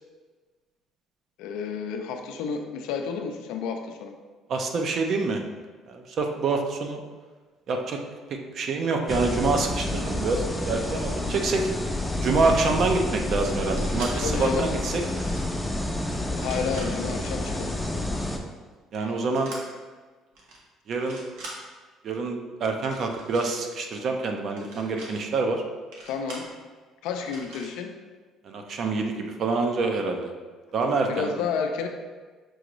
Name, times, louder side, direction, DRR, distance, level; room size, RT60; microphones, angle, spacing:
voice 1, 1.4-4.1 14.2-14.7 16.4-17.8 19.0-19.1 26.0-26.4 27.0-27.9 31.1-31.9, left 5 dB, 85° left, 4 dB, 0.4 m, -31 dB
voice 2, 4.5-5.4 5.9-7.0 7.7-8.0 8.5-11.7 12.2-15.0 18.9-19.5 20.9-21.2 22.0-25.6 28.4-30.3 30.7-31.3, right 3 dB, 55° right, 3 dB, 0.6 m, -26 dB
sound 1, 9.1-18.4, left 1 dB, 5° left, 0.5 m, -29 dB
sound 2, 13.5-14.1 14.9-15.5 16.3-16.9 19.3-19.6 20.3-20.6 20.9-21.5 22.8-23.5 24.5-25.1 25.9-26.5 27.2-27.7, right 2 dB, 85° right, 1.0 m, -42 dB
6.2 x 2.5 x 3.0 m, 1.4 s
cardioid pair, 95°, 0 cm